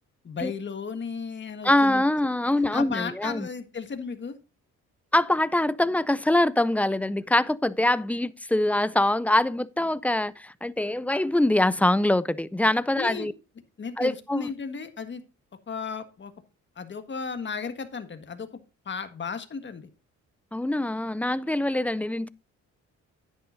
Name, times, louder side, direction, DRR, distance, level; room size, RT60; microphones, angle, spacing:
voice 1, 0.2-2.0 2.7-4.4 12.9-13.3 13.8-15.2 15.7-16.3 16.7-18.5 18.8-19.9, left 5 dB, 40° left, 1.6 m, -34 dB
voice 2, 1.6-3.5 5.1-13.3 14.0-14.5 20.5-22.3, left 1 dB, 5° left, 0.4 m, -24 dB
10.5 x 10.0 x 2.6 m
cardioid pair, 90°, 30 cm